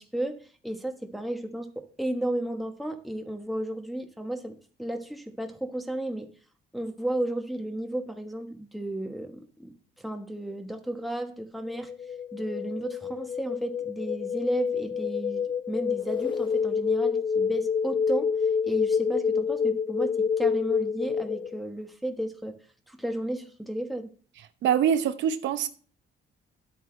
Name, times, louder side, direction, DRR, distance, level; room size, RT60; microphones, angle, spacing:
voice 1, 0.0-6.3 6.7-11.9 12.3-18.3 18.6-22.5 22.9-24.1, right 1 dB, ahead, 1.3 m, -33 dB
sound 1, 11.7-21.6, left 6 dB, 25° left, 0.4 m, -28 dB
voice 2, 24.6-25.7, right 9 dB, 75° right, 0.9 m, -24 dB
11.0 x 8.1 x 3.2 m
cardioid pair, 105°, 19 cm